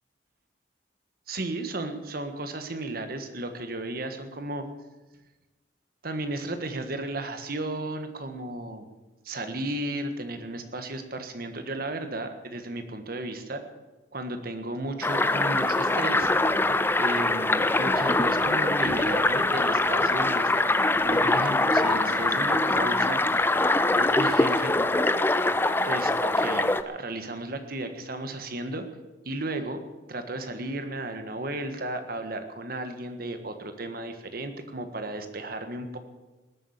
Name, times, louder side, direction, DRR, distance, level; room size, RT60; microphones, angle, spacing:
voice 1, 1.3-4.7 6.0-8.9 9.2-13.6 14.1-16.3 17.0-20.7 21.0-23.2 24.0-24.7 25.8-28.9 29.2-29.8 30.1-36.0, right 2 dB, 50° right, 7 dB, 1.6 m, -34 dB
sound 1, 15.0-26.8, left 2 dB, 10° left, 0.5 m, -23 dB
19.5 x 8.6 x 7.3 m, 1.2 s
head